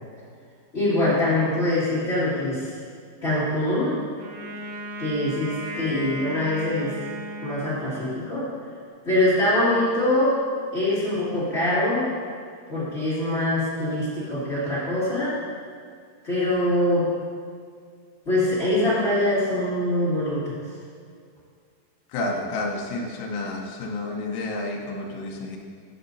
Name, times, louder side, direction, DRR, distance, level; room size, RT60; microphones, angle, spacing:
voice 1, 0.7-2.7 3.2-4.0 5.0-6.9 7.4-8.5 9.0-10.3 10.7-12.1 12.7-15.3 16.2-17.1 18.2-20.5, left 1 dB, 60° left, -13 dB, 0.6 m, -23 dB
Wind instrument woodwind instrument, 4.2-8.4, equal, 80° right, 3.3 m, -36 dB
voice 2, 22.1-25.6, left 2 dB, 90° left, 0 dB, 3.3 m, -30 dB
13.0 x 6.9 x 2.7 m, 2.1 s
omnidirectional pair, 5.2 m